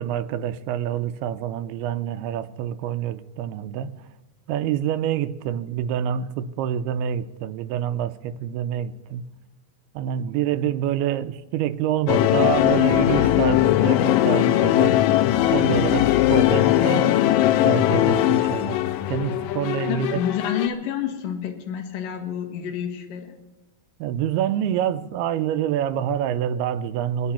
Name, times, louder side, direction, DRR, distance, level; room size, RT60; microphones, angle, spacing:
voice 1, 0.0-3.9 4.5-9.3 9.9-15.0 15.5-18.8 19.1-20.2 24.0-27.3, right 10 dB, 85° right, 2.6 m, -27 dB
sound 1, 12.1-20.7, left 14 dB, 85° left, 2.0 m, -20 dB
voice 2, 19.9-23.3, left 8 dB, 65° left, 2.8 m, -29 dB
25.5 x 9.6 x 4.3 m
omnidirectional pair, 4.5 m